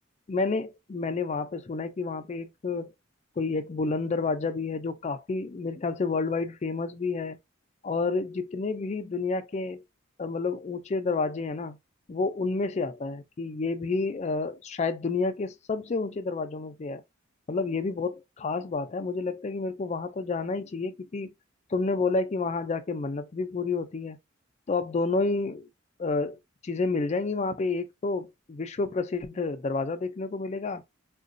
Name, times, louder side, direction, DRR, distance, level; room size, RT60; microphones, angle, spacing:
voice 1, 0.3-2.9 3.4-7.4 7.8-9.8 10.2-11.8 12.1-17.0 17.5-21.3 21.7-24.2 24.7-25.7 26.0-30.8, left 3 dB, 35° left, 0.4 m, -30 dB
3.8 x 2.2 x 2.5 m
head